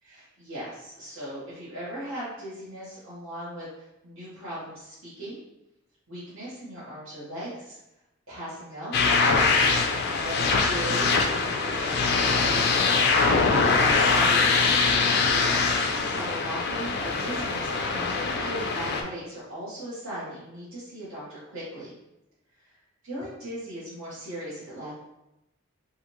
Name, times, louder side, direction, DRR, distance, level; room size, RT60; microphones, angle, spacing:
voice 1, 0.0-5.4 6.1-7.8 8.3-9.9 10.2-12.6 13.7-15.5 16.0-21.9 23.0-24.9, right 1 dB, 75° right, -12 dB, 1.4 m, -38 dB
sound 1, 8.9-19.0, left 4 dB, 50° left, 0.4 m, -23 dB
3.6 x 2.4 x 3.0 m, 0.90 s
head